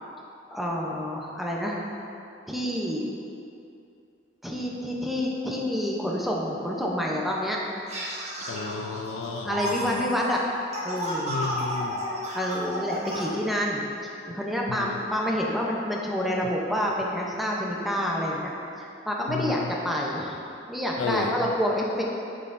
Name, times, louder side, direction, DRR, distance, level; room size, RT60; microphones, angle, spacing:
voice 1, 0.5-1.8 2.5-3.0 4.4-7.6 9.4-10.5 10.8-11.4 12.3-22.0, equal, ahead, -3 dB, 0.6 m, -28 dB
sound 1, 7.9-13.3, equal, 35° right, 1.0 m, -33 dB
voice 2, 8.5-10.1 11.3-12.0 14.7-14.9 19.3-19.7 21.0-21.3, left 4 dB, 70° left, 5 dB, 0.4 m, -32 dB
7.8 x 5.5 x 2.6 m, 2.6 s
head